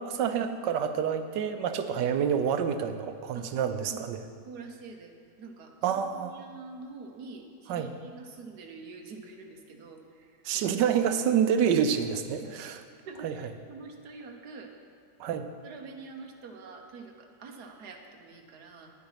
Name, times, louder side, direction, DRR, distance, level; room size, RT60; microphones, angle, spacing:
voice 1, 0.0-4.2 5.8-6.3 7.7-7.9 10.4-12.8 13.2-13.3 15.2-15.5, right 8 dB, 85° right, 9 dB, 1.3 m, -28 dB
voice 2, 4.4-5.1 5.4-10.7 12.4-12.5 13.1-14.7 15.6-18.9, right 4 dB, 65° right, 3 dB, 1.6 m, -46 dB
10.0 x 9.5 x 5.7 m, 2.3 s
omnidirectional pair, 1.8 m